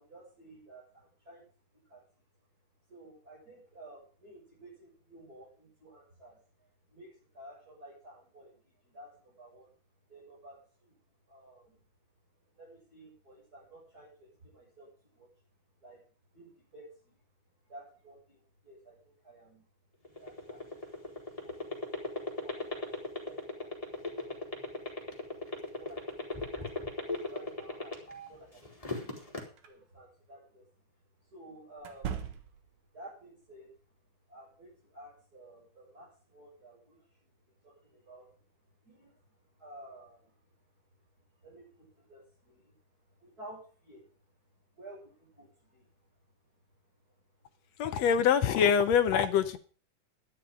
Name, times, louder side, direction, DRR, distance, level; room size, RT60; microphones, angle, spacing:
voice 1, 0.0-1.5 1.8-2.2 2.9-9.7 10.1-11.0 11.3-11.8 12.4-15.3 15.8-16.0 16.3-17.2 17.6-19.6 20.2-21.9 22.4-25.1 25.5-26.8 27.0-29.3 29.6-30.7 31.2-32.2 32.9-34.0 34.3-38.5 38.8-40.6 41.4-44.3 44.7-46.1 46.9-47.2 47.7-47.8, right 1 dB, 30° right, -7 dB, 7.8 m, -54 dB
sound 1, 20.0-28.3 28.7-29.4, left 3 dB, 10° left, 3.0 m, -35 dB
sound 2, 29.6-29.8 31.8-32.8, right 8 dB, 70° right, 2.8 m, -39 dB
voice 2, 47.8-49.6, left 8 dB, 70° left, 10 dB, 1.9 m, -24 dB
11.5 x 11.5 x 5.1 m, 0.39 s
omnidirectional pair, 3.5 m